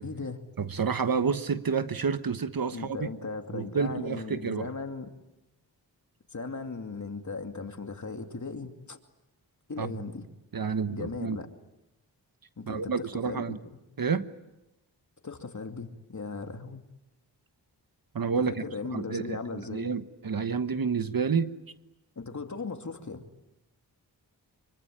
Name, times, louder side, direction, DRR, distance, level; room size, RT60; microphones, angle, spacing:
voice 1, 0.0-0.4 2.7-5.1 6.3-9.0 9.7-10.3 10.9-11.5 12.6-13.6 15.2-16.9 18.5-19.9 22.2-23.2, left 4 dB, 45° left, 2.6 m, -37 dB
voice 2, 0.6-3.1 3.5-4.7 9.8-9.9 10.5-11.4 12.7-13.6 14.0-14.3 18.1-18.5 18.9-21.5, right 5 dB, 55° right, 1.3 m, -29 dB
25.5 x 24.0 x 8.8 m
cardioid pair, 65°, 41 cm